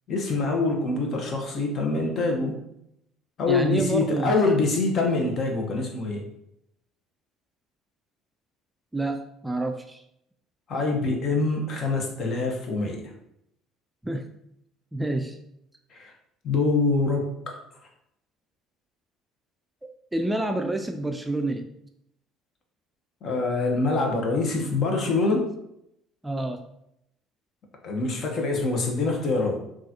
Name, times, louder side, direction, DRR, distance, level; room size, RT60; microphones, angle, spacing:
voice 1, 0.1-2.6 3.4-6.3 10.7-13.1 15.9-16.1 16.4-17.6 23.2-25.5 27.8-29.6, left 3 dB, 50° left, 2 dB, 0.8 m, -25 dB
voice 2, 3.5-4.3 8.9-10.0 14.0-14.3 14.9-15.4 19.8-21.7 26.2-26.6, right 2 dB, 10° right, 5 dB, 0.3 m, -28 dB
3.9 x 2.4 x 2.8 m, 0.78 s
hypercardioid pair, 70°, 0 cm